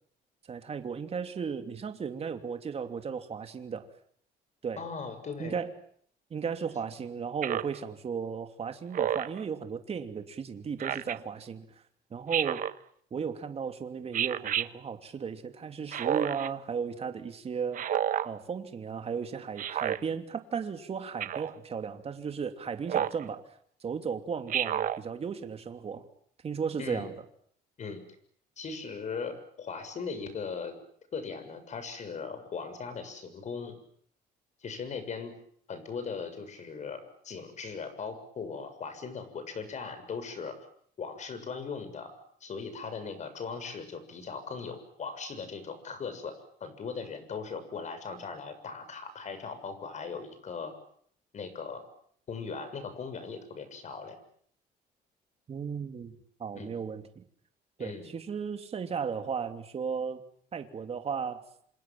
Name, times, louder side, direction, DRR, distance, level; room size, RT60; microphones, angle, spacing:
voice 1, 0.5-3.9 4.6-4.8 5.4-5.7 6.3-11.7 12.1-12.7 13.1-17.9 18.2-23.5 23.8-26.1 26.4-27.1 55.5-56.1 56.4-57.2 57.8-60.2 60.5-61.4, right 6 dB, 35° right, 7 dB, 3.0 m, -35 dB
voice 2, 4.8-5.6 26.8-27.1 27.8-28.0 28.6-30.7 31.1-33.8 34.6-35.3 35.7-40.5 41.0-42.1 42.4-46.3 46.6-50.7 51.3-51.8 52.3-54.2 56.5-56.8 57.8-58.1, left 5 dB, 45° left, 10 dB, 7.1 m, -39 dB
Speech synthesizer, 7.4-7.8 8.9-9.4 10.8-11.2 12.3-12.8 14.1-14.7 15.9-16.5 17.7-18.3 19.6-20.0 21.2-21.5 22.9-23.2 24.5-25.0, right 10 dB, 55° right, 1.2 m, -30 dB
27.5 x 27.0 x 7.6 m, 0.63 s
cardioid pair, 110°, 17 cm